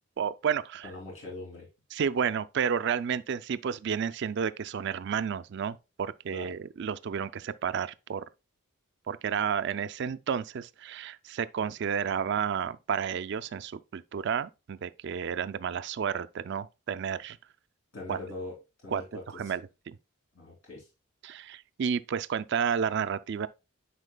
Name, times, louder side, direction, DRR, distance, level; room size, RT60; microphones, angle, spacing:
voice 1, 0.2-0.9 1.9-8.3 9.1-17.4 18.1-18.2 18.9-19.0 19.3-20.0 21.2-23.5, right 7 dB, 55° right, 0.3 m, -31 dB
voice 2, 0.8-1.7 6.3-6.5 17.9-18.5 18.8-19.5 20.3-20.9, left 2 dB, 75° left, 3.0 m, -41 dB
9.8 x 4.6 x 2.2 m
head